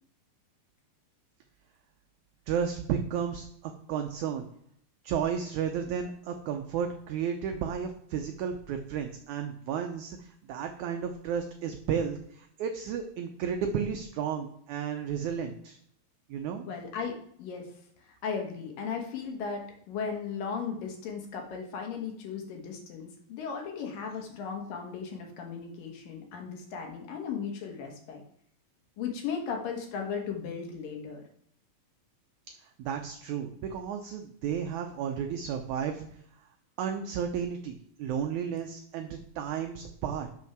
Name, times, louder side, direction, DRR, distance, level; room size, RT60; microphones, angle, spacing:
voice 1, 2.5-4.4 5.0-15.8 16.3-16.7 32.8-36.1 36.8-40.3, right 7 dB, 85° right, 5 dB, 1.7 m, -33 dB
voice 2, 16.7-17.7 18.0-28.2 29.0-31.2, left 6 dB, 70° left, 2 dB, 2.9 m, -36 dB
6.4 x 5.9 x 5.9 m, 0.67 s
omnidirectional pair, 4.2 m